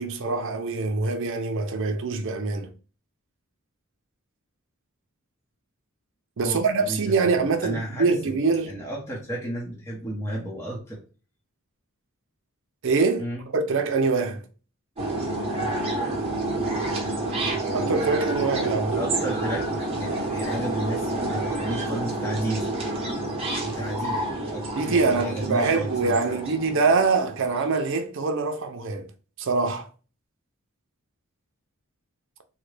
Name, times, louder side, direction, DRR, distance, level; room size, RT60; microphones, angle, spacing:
voice 1, 0.0-2.7 6.4-8.7 12.8-13.2 13.5-14.4 17.7-19.0 24.8-29.1 29.4-29.9, right 4 dB, 60° right, 0.5 m, -24 dB
voice 2, 6.4-8.4 8.6-11.0 13.2-13.4 18.9-22.7 23.6-26.4, right 1 dB, 15° left, 0.8 m, -33 dB
sound 1, 15.0-27.8, right 2 dB, 25° right, 0.9 m, -29 dB
3.6 x 2.1 x 3.2 m
head